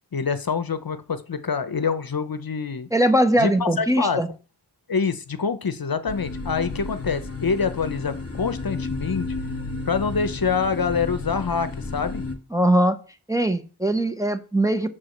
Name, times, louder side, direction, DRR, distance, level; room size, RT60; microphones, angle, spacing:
voice 1, 0.1-2.9 3.4-4.2 4.9-9.4 9.9-12.2, left 5 dB, 55° left, 12 dB, 0.7 m, -26 dB
voice 2, 2.9-4.3 12.5-13.0 13.3-14.9, right 1 dB, 10° right, 6 dB, 0.7 m, -21 dB
sound 1, 6.1-12.4, left 3 dB, 35° left, 1.2 m, -32 dB
6.0 x 4.7 x 6.4 m, 0.35 s
wide cardioid pair, 55°, 42 cm